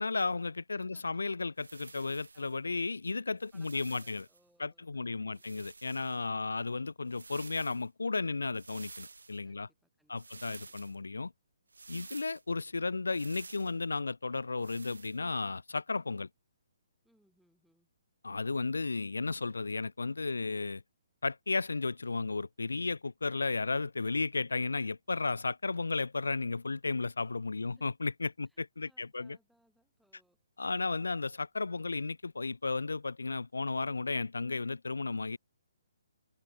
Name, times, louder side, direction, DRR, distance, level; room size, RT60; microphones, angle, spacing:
voice 1, 0.0-4.2 4.6-9.7 10.1-11.3 11.9-16.3 18.2-20.8 21.2-29.4 30.6-35.4, left 3 dB, 70° left, 0.7 m, -34 dB
voice 2, 0.7-1.2 2.3-2.4 3.5-5.5 9.4-10.7 17.0-17.9 27.6-27.8 28.4-30.4, right 1 dB, ahead, 4.7 m, -71 dB
sound 1, 1.6-2.5 3.4-4.4 5.3-6.3 7.0-7.9 8.5-9.4 10.2-11.0 11.7-12.4 13.1-13.8 14.6-15.2, right 4 dB, 65° right, 2.7 m, -51 dB
figure-of-eight pair, 135°, 0 cm